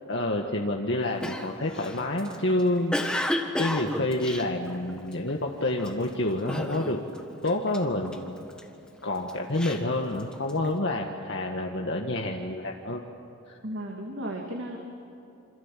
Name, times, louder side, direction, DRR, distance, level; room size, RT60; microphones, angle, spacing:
voice 1, 0.1-7.0 7.4-8.4 9.0-13.0 13.5-13.6, left 1 dB, 55° left, 1 dB, 1.7 m, -28 dB
Cough, 1.2-5.3 5.8-6.1 6.5-7.2 7.4-8.6 9.1-10.7, left 1 dB, 5° left, 1.5 m, -32 dB
voice 2, 13.6-14.8, right 1 dB, 60° right, 0 dB, 2.8 m, -34 dB
28.0 x 26.5 x 7.6 m, 2.8 s
head